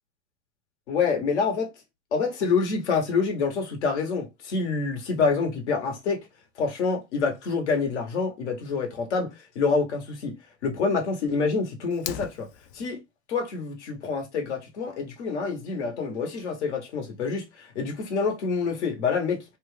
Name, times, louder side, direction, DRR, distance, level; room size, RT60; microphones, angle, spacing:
voice 1, 0.9-1.7 2.1-6.3 6.6-10.4 10.6-12.5 12.7-13.0 13.3-19.4, left 4 dB, 75° left, 1.2 m, -27 dB
Fire, 11.9-12.9, left 10 dB, 50° left, 0.5 m, -37 dB
2.9 x 2.3 x 3.3 m
hypercardioid pair, 100°, 34 cm